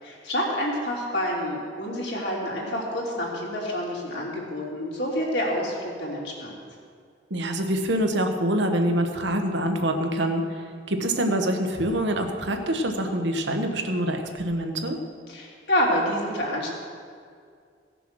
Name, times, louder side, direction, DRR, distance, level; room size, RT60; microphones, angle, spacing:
voice 1, 0.0-6.6 15.3-16.7, equal, 65° left, -3 dB, 3.0 m, -28 dB
voice 2, 7.3-15.0, right 1 dB, 75° right, 4 dB, 1.3 m, -25 dB
17.0 x 6.8 x 6.3 m, 2.2 s
head